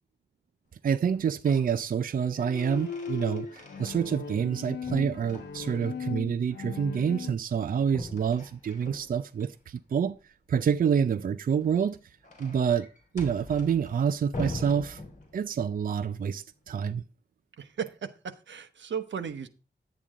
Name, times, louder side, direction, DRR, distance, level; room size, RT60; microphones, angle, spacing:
voice 1, 0.8-10.2 10.5-12.9 13.1-15.0 15.3-17.0, right 7 dB, 50° right, 0.4 m, -27 dB
sound 1, 1.1-1.7 2.1-4.5 4.9-6.1 7.9-9.5 11.5-15.7, left 2 dB, 40° left, 3.1 m, -43 dB
Bowed string instrument, 2.3-7.3, left 6 dB, 70° left, 0.8 m, -38 dB
voice 2, 17.6-19.5, right 7 dB, 85° right, 1.0 m, -36 dB
10.0 x 8.6 x 3.6 m
wide cardioid pair, 135°, 19 cm